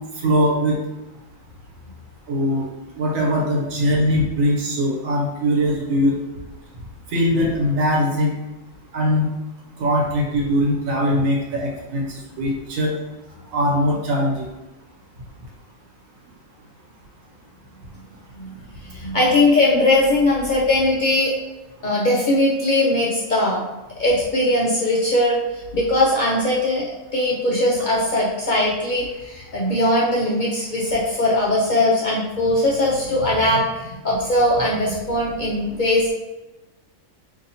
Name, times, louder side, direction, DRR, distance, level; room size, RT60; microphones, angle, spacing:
voice 1, 0.2-0.8 2.3-2.6 3.0-6.1 7.1-8.3 8.9-9.3 9.8-13.0 13.5-14.5, equal, 80° right, -2 dB, 1.1 m, -21 dB
voice 2, 18.8-21.3 21.8-23.7 24.0-26.8 27.1-36.1, left 1 dB, 65° left, -4 dB, 0.4 m, -20 dB
4.0 x 2.8 x 2.7 m, 1.0 s
omnidirectional pair, 1.4 m